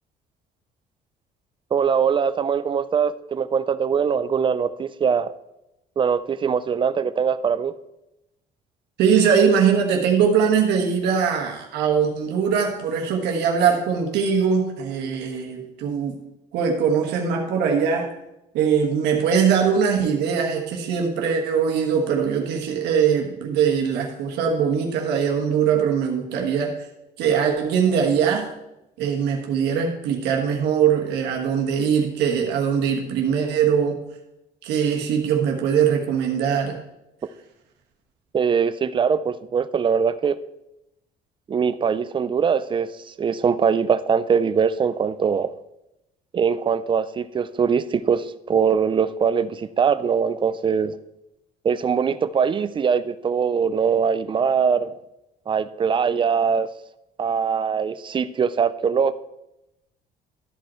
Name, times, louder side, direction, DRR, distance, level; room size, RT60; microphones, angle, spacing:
voice 1, 1.7-5.3 6.0-7.7 38.3-40.4 41.5-45.5 46.3-51.0 51.6-54.9 55.5-56.7 57.2-59.1, right 6 dB, 30° right, 14 dB, 0.5 m, -22 dB
voice 2, 9.0-16.2 16.5-18.1 18.5-26.8 27.2-28.5 29.0-34.0 34.6-36.8, right 7 dB, 85° right, 1 dB, 1.4 m, -21 dB
12.5 x 5.3 x 4.3 m, 0.90 s
cardioid pair, 110°, 17 cm